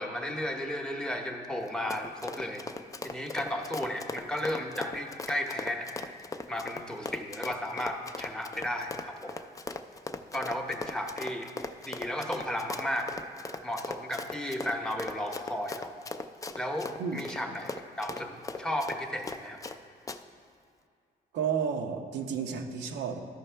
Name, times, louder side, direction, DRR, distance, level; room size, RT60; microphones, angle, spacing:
voice 1, 0.0-2.6 3.0-5.9 6.5-9.3 10.3-11.5 11.8-13.1 13.6-15.9 16.6-17.7 18.0-19.6, left 1 dB, 5° left, 3 dB, 0.7 m, -34 dB
Run, 1.6-19.8 20.1-20.2, left 3 dB, 20° left, 0.3 m, -39 dB
voice 2, 21.3-23.2, right 7 dB, 90° right, 3 dB, 0.8 m, -31 dB
13.5 x 5.4 x 3.3 m, 2.3 s
cardioid pair, 110°, 17 cm